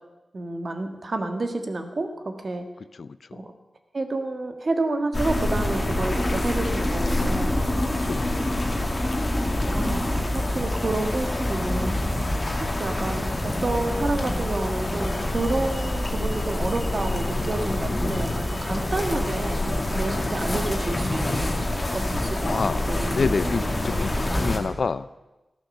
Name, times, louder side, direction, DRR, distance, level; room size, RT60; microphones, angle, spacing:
voice 1, 0.3-2.7 3.3-3.5 3.9-7.5 9.7-12.0 12.6-19.6 19.9-21.7 21.9-22.6 22.9-23.5, right 2 dB, 50° right, 6 dB, 1.6 m, -29 dB
voice 2, 3.0-3.4 8.0-8.2 19.0-19.1 20.2-20.3 22.4-22.8 23.1-24.1 24.4-25.1, left 4 dB, 70° left, 16 dB, 0.4 m, -28 dB
sound 1, 5.1-24.6, left 1 dB, 25° left, 2.2 m, -26 dB
14.5 x 11.5 x 6.6 m, 1.1 s
wide cardioid pair, 125°, 0 cm